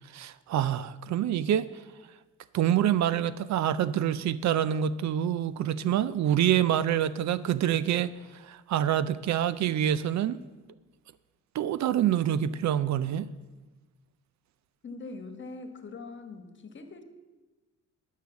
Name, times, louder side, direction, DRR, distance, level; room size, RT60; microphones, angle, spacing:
voice 1, 0.1-1.7 2.5-8.1 8.4-10.4 11.5-13.3, right 10 dB, 65° right, 16 dB, 0.5 m, -26 dB
voice 2, 14.8-17.0, left 3 dB, 40° left, 8 dB, 1.3 m, -42 dB
11.5 x 6.5 x 6.9 m, 1.2 s
cardioid pair, 90°, 30 cm